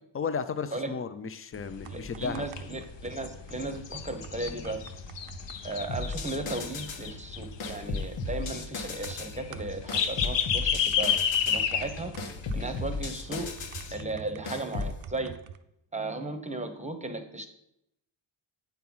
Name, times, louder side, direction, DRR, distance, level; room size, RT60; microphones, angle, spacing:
voice 1, 0.1-2.4, left 5 dB, 30° left, 12 dB, 0.5 m, -34 dB
sound 1, 1.6-14.0, left 7 dB, 60° left, 0.8 m, -33 dB
sound 2, 1.8-15.6, right 8 dB, 90° right, 0.7 m, -48 dB
voice 2, 1.9-4.8 5.6-11.1 11.4-12.1 12.5-13.5 13.9-15.3 15.9-17.5, right 2 dB, 15° right, 7 dB, 0.8 m, -36 dB
sound 3, 5.9-7.1 7.6-9.4 9.9-11.6 12.2-13.9 14.5-15.0, left 3 dB, 90° left, 1.2 m, -35 dB
8.5 x 4.6 x 5.5 m, 0.81 s
wide cardioid pair, 125°, 50 cm